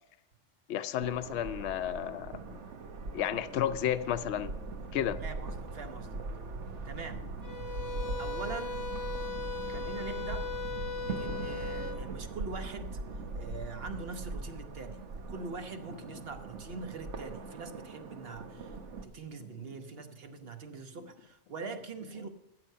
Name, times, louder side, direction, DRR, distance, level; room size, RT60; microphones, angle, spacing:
voice 1, 0.7-2.6 3.1-4.5 4.9-5.2, left 10 dB, 75° left, 11 dB, 0.8 m, -32 dB
sound 1, 1.0-19.0, right 3 dB, 80° right, 1.3 m, -40 dB
voice 2, 5.2-6.1 6.8-7.3 8.2-8.9 9.6-10.5 11.0-13.0 13.4-18.8 19.0-22.3, right 4 dB, 60° right, 7 dB, 1.3 m, -43 dB
sound 2, 7.4-12.0, left 4 dB, 20° right, 1.9 m, -38 dB
14.0 x 8.0 x 5.5 m, 0.90 s
omnidirectional pair, 1.2 m